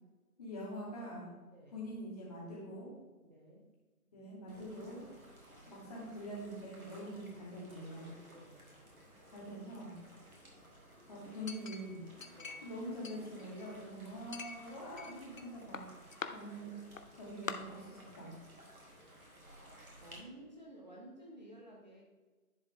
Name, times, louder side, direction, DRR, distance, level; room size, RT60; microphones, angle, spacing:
voice 1, 0.4-1.3 1.7-2.9 4.1-5.0 5.7-8.2 9.3-10.0 11.1-15.9 16.2-16.7 17.2-18.3, equal, 25° left, -5 dB, 2.2 m, -45 dB
voice 2, 3.2-3.7 8.3-8.8 12.3-12.6 20.0-22.0, right 1 dB, 30° right, -3 dB, 0.8 m, -54 dB
sound 1, 4.5-20.2, equal, 65° right, 2.5 m, -57 dB
Chink clink, 11.5-12.7 13.0-13.8 14.3-15.4 15.7-16.3 17.0-17.1 17.5-17.6, left 5 dB, 60° left, 0.7 m, -44 dB
10.5 x 4.8 x 3.7 m, 1.3 s
figure-of-eight pair, 150°, 45 cm